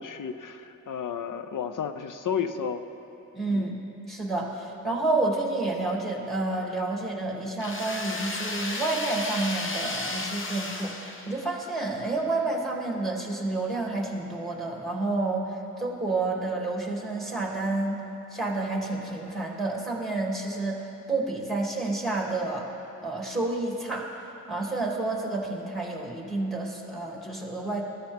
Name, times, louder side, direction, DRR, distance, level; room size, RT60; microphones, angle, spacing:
voice 1, 0.0-2.8 3.5-3.7, left 7 dB, 80° left, 9 dB, 0.7 m, -32 dB
voice 2, 3.3-3.7 4.1-18.0 18.3-22.7 23.0-27.8, right 2 dB, ahead, -2 dB, 2.7 m, -29 dB
sound 1, 7.6-11.7, left 2 dB, 40° left, 1.1 m, -33 dB
21.5 x 13.5 x 3.6 m, 2.9 s
wide cardioid pair, 80°, 31 cm